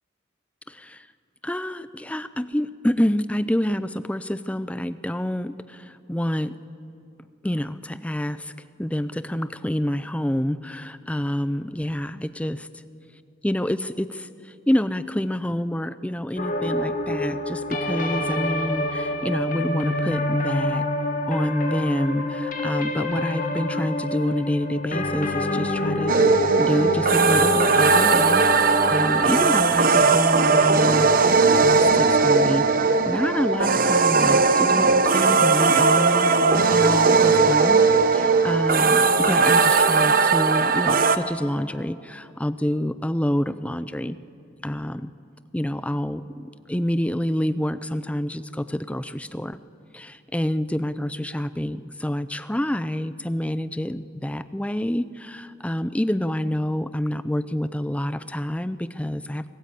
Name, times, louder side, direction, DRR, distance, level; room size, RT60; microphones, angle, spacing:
voice 1, 0.7-1.1 1.4-6.6 7.4-8.5 8.8-12.7 13.4-20.9 21.3-26.1 26.6-31.1 31.6-37.8 38.1-44.2 44.6-45.1 45.5-49.6 49.9-59.5, equal, 5° left, 13 dB, 0.5 m, -27 dB
sound 1, 16.4-29.4, left 1 dB, 40° left, 1.9 m, -27 dB
sound 2, 26.1-41.2, right 4 dB, 45° right, 0.9 m, -18 dB
25.5 x 18.5 x 8.4 m, 2.8 s
head